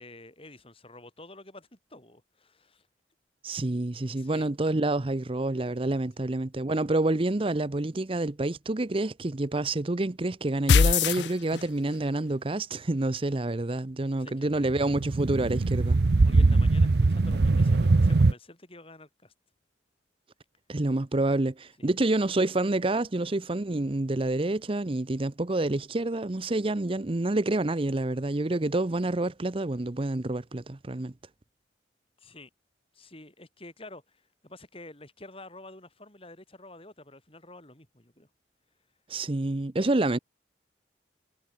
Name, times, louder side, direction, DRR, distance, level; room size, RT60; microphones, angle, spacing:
voice 1, 0.0-2.9 4.2-4.5 6.2-6.3 14.1-14.7 16.2-19.3 21.8-21.9 32.2-32.5 32.9-38.3 39.8-39.9, left 2 dB, 30° left, 7.7 m, -49 dB
voice 2, 3.4-16.0 20.7-31.1 39.1-40.2, right 2 dB, 30° right, 0.7 m, -28 dB
sound 1, 10.7-12.0, left 6 dB, 75° left, 0.5 m, -21 dB
sound 2, 14.6-18.3, right 3 dB, 65° right, 0.6 m, -22 dB
head